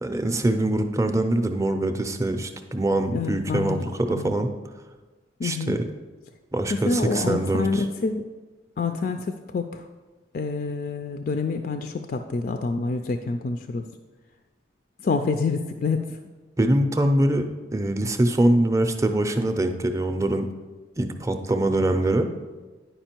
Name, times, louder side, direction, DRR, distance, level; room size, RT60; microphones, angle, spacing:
voice 1, 0.0-4.5 5.4-5.8 6.5-7.8 16.6-17.5 17.7-20.5 21.0-22.3, right 1 dB, 15° right, 6 dB, 0.5 m, -23 dB
voice 2, 3.1-3.8 4.1-4.3 5.4-5.8 6.7-8.3 8.8-9.9 10.3-13.9 15.0-16.2, left 4 dB, 50° left, 6 dB, 0.3 m, -27 dB
10.0 x 5.1 x 4.4 m, 1.3 s
head